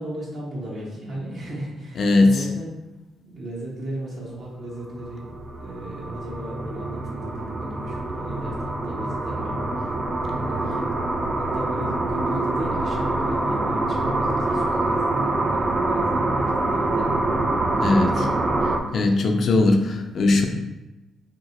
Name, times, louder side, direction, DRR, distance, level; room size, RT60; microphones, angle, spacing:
voice 1, 0.0-2.7 3.2-5.3 5.6-9.9 10.2-10.9 11.5-17.1, right 1 dB, 60° right, -6 dB, 0.9 m, -35 dB
voice 2, 2.0-2.5 17.8-18.3 18.9-20.5, left 2 dB, 55° left, 4 dB, 0.4 m, -19 dB
sound 1, 4.7-18.8, right 2 dB, 30° right, 0.3 m, -25 dB
2.9 x 2.8 x 2.8 m, 1.0 s
cardioid pair, 90°, 0 cm